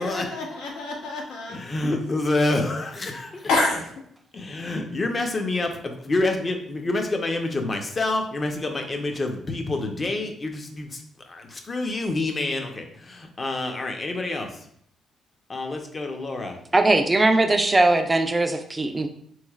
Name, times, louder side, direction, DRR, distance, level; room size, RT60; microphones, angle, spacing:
voice 1, 0.0-1.6 3.5-3.9, left 2 dB, 90° left, 0 dB, 0.8 m, -27 dB
voice 2, 1.5-3.5 4.3-14.7 15.5-16.6, left 2 dB, 30° left, 4 dB, 0.6 m, -27 dB
voice 3, 16.7-19.1, right 2 dB, 20° right, 6 dB, 0.4 m, -20 dB
3.7 x 3.1 x 2.3 m, 0.67 s
cardioid pair, 90°, 0 cm